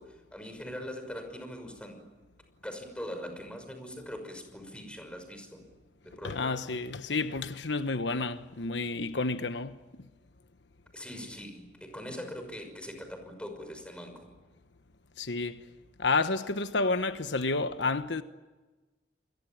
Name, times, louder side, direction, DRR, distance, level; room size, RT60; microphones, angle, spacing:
voice 1, 0.0-2.0 2.6-5.6 6.0-6.5 10.9-14.3, equal, 5° left, 6.0 m, -42 dB
voice 2, 6.2-10.1 15.2-15.6 16.0-18.2, left 3 dB, 85° left, 1.2 m, -30 dB
28.5 x 22.0 x 8.9 m
head